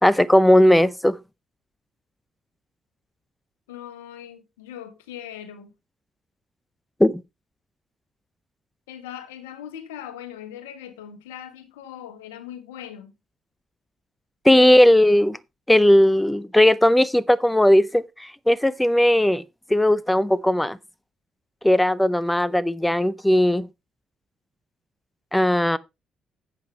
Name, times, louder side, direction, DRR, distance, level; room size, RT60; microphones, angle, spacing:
voice 1, 0.0-1.2 7.0-7.2 14.4-15.4 15.7-19.4 19.7-20.8 21.6-23.7 25.3-25.8, left 1 dB, 10° left, 0.6 m, -17 dB
voice 2, 3.7-5.7 8.9-13.1, left 10 dB, 85° left, 1.3 m, -40 dB
11.5 x 8.2 x 3.2 m
hypercardioid pair, 45°, 0 cm